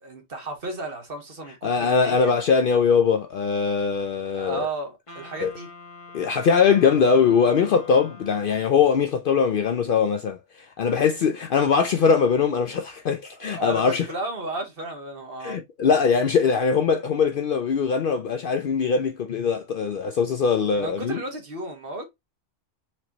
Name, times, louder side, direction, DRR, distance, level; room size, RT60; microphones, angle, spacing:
voice 1, 0.0-2.3 4.3-5.7 13.3-15.6 20.7-22.0, right 2 dB, 50° right, 1.4 m, -33 dB
voice 2, 1.6-4.7 5.4-5.5 6.1-14.1 15.4-21.2, left 6 dB, 60° left, 0.6 m, -21 dB
Wind instrument woodwind instrument, 5.1-8.9, left 3 dB, 30° left, 1.2 m, -45 dB
4.5 x 3.0 x 2.8 m
omnidirectional pair, 1.2 m